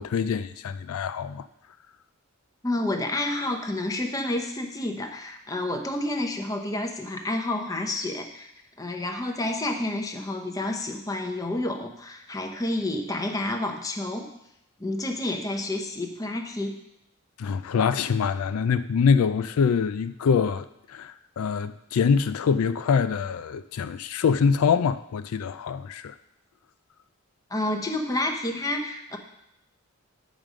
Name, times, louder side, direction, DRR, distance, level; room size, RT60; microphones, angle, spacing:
voice 1, 0.0-1.4 17.4-26.1, left 6 dB, 80° left, 0.4 m, -24 dB
voice 2, 2.6-8.5 8.8-14.3 14.8-16.8 27.5-29.2, left 1 dB, 15° left, 0.8 m, -29 dB
9.1 x 5.2 x 6.2 m
head